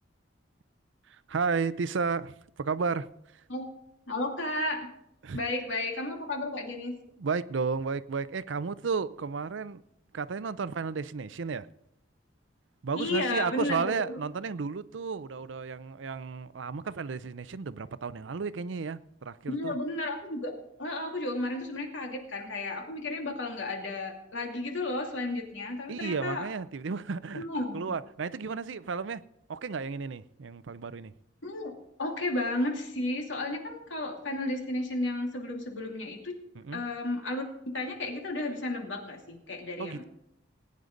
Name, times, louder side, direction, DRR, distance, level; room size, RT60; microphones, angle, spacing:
voice 1, 1.1-3.1 5.2-5.4 7.2-9.8 10.1-11.7 12.8-19.8 25.9-27.5 27.7-29.2 29.5-31.1 36.5-36.8 39.8-40.0, right 5 dB, 80° right, 0.5 m, -33 dB
voice 2, 4.1-4.9 5.3-7.0 13.0-14.2 19.5-20.5 20.8-26.5 27.3-27.9 31.4-31.7 32.0-36.4 36.7-37.4 37.7-40.0, left 2 dB, 85° left, 2.6 m, -33 dB
20.0 x 9.5 x 3.9 m
head